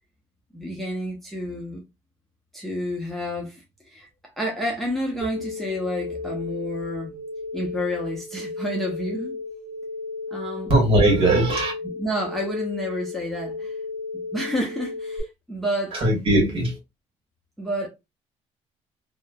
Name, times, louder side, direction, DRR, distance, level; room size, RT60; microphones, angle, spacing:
voice 1, 0.5-1.8 2.5-3.6 3.9-4.1 4.4-7.2 7.5-9.3 10.3-10.7 12.0-13.7 14.1-16.0 17.6-17.9, equal, ahead, 0.6 m, -29 dB
sound 1, 5.2-15.2, left 3 dB, 30° right, 1.5 m, -34 dB
voice 2, 10.7-11.7 15.9-16.8, right 1 dB, 50° right, 1.4 m, -19 dB
3.0 x 2.1 x 2.2 m
cardioid pair, 135°, 12 cm